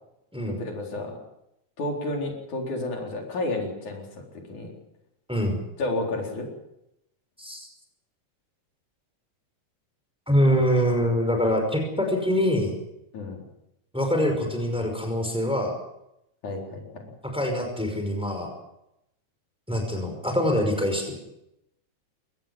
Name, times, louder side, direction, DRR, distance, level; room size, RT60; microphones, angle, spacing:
voice 1, 0.5-1.2 1.8-4.1 4.5-4.7 5.8-6.5 13.1-13.4 16.4-17.0, left 2 dB, 80° left, 0 dB, 5.7 m, -31 dB
voice 2, 5.3-5.6 7.4-7.7 10.3-12.7 13.9-15.7 17.2-18.5 19.7-21.1, equal, ahead, 4 dB, 5.3 m, -24 dB
22.5 x 18.0 x 7.4 m, 0.84 s
omnidirectional pair, 3.4 m